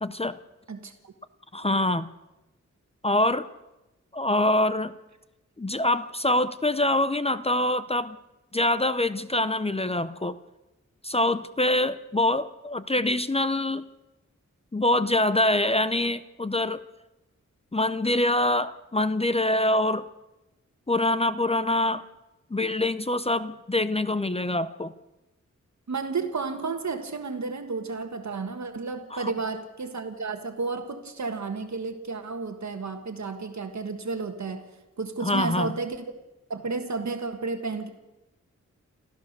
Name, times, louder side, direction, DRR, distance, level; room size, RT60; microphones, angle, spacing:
voice 1, 0.0-0.4 1.5-2.1 3.0-3.5 4.1-4.9 5.6-8.2 8.5-10.4 11.0-13.8 14.7-16.8 17.7-20.1 20.9-22.0 22.5-24.9 29.1-29.3 35.2-35.7, left 1 dB, 20° left, 13 dB, 0.6 m, -25 dB
voice 2, 0.7-1.1 25.9-34.7 35.0-36.0 36.5-37.9, right 4 dB, 70° right, 6 dB, 1.6 m, -32 dB
27.5 x 14.5 x 6.7 m, 1.0 s
wide cardioid pair, 115°, 30 cm